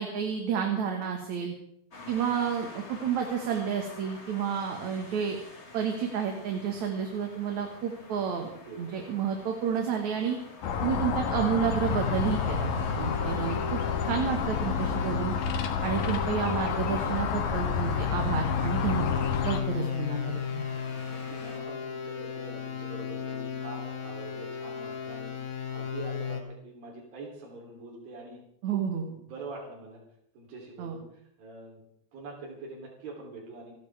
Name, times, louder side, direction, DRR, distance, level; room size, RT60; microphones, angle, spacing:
voice 1, 0.0-1.5 2.1-5.4 5.7-8.5 8.8-10.4 10.8-12.7 13.0-15.3 15.8-20.6 28.6-29.1 30.8-31.0, right 7 dB, 60° right, 2 dB, 2.9 m, -30 dB
sound 1, 1.9-21.6, left 3 dB, 25° left, 1.7 m, -49 dB
voice 2, 8.6-9.0 13.0-13.2 21.1-25.4 25.7-28.4 28.7-30.0 30.4-31.1 31.4-31.8 32.1-33.7, right 3 dB, 85° right, -1 dB, 5.3 m, -44 dB
sound 2, 10.6-19.6, left 6 dB, 65° left, 2.7 m, -30 dB
sound 3, 11.8-26.4, left 7 dB, 45° left, 2.1 m, -35 dB
29.0 x 12.0 x 3.5 m, 0.72 s
omnidirectional pair, 4.0 m